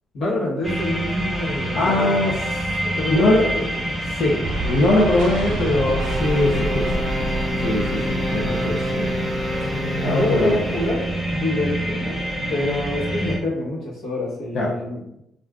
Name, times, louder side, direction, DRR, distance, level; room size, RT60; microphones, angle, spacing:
voice 1, 0.1-2.2 2.8-3.9 9.6-12.2 12.5-15.2, left 2 dB, 80° left, -5 dB, 1.1 m, -27 dB
sound 1, 0.6-13.4, right 1 dB, 25° left, 1.1 m, -27 dB
voice 2, 1.7-2.7 3.0-3.5 4.1-7.0 7.6-9.4 10.0-10.5 14.5-14.7, left 1 dB, 65° left, -4 dB, 0.5 m, -21 dB
sound 2, 4.4-11.4, right 1 dB, 85° right, 0.4 m, -30 dB
sound 3, 6.0-11.2, left 1 dB, ahead, 1.0 m, -29 dB
3.4 x 2.4 x 2.3 m, 0.81 s
cardioid pair, 90°, 0 cm